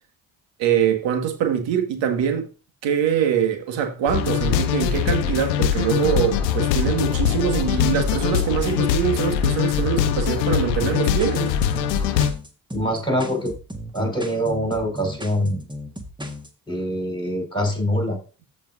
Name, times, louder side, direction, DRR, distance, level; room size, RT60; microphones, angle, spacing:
voice 1, 0.6-2.5 2.8-11.5, right 9 dB, 65° right, 1.8 m, -23 dB
sound 1, 4.1-12.3, left 9 dB, 85° left, 0.8 m, -22 dB
sound 2, 10.9-16.5, left 1 dB, 10° right, 1.6 m, -36 dB
voice 2, 12.7-13.5 13.9-15.6 16.7-18.2, equal, 10° left, 4.9 m, -24 dB
14.5 x 5.2 x 2.6 m
hypercardioid pair, 40°, 48 cm